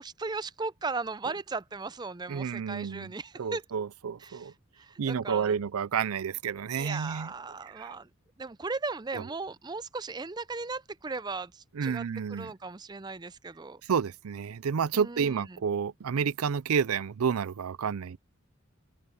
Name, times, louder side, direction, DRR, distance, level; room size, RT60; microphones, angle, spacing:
voice 1, 0.0-3.6 4.2-5.6 6.8-8.1 8.4-13.8 14.9-15.6, right 3 dB, 20° right, 0.4 m, -37 dB
voice 2, 2.3-3.1 3.4-4.5 5.0-7.3 7.8-7.9 9.1-9.2 11.8-12.5 13.9-18.2, right 6 dB, 90° right, 0.5 m, -30 dB
open air
head